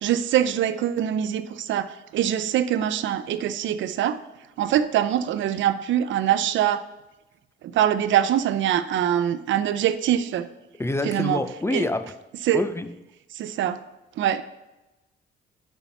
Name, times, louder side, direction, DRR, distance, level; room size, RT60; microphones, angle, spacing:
voice 1, 0.0-4.2 4.6-6.8 7.6-10.5 11.1-11.4 11.7-11.9 12.5-12.6 13.3-13.8 14.2-14.4, right 10 dB, 70° right, 0.5 m, -23 dB
voice 2, 10.8-12.2 12.5-12.9, left 2 dB, 15° left, 0.5 m, -27 dB
7.0 x 5.6 x 5.8 m
cardioid pair, 90°, 20 cm